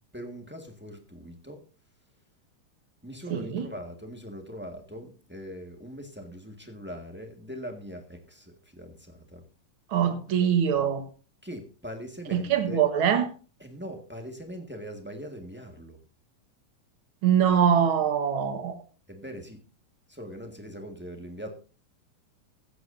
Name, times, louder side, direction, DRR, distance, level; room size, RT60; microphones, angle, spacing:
voice 1, 0.1-1.6 3.0-9.4 11.4-12.8 13.6-16.0 19.1-19.6 20.1-21.5, equal, 15° right, 0.4 m, -41 dB
voice 2, 3.3-3.7 9.9-11.0 12.3-13.3 17.2-18.8, right 8 dB, 50° right, 1.9 m, -23 dB
15.5 x 14.0 x 2.6 m
omnidirectional pair, 3.5 m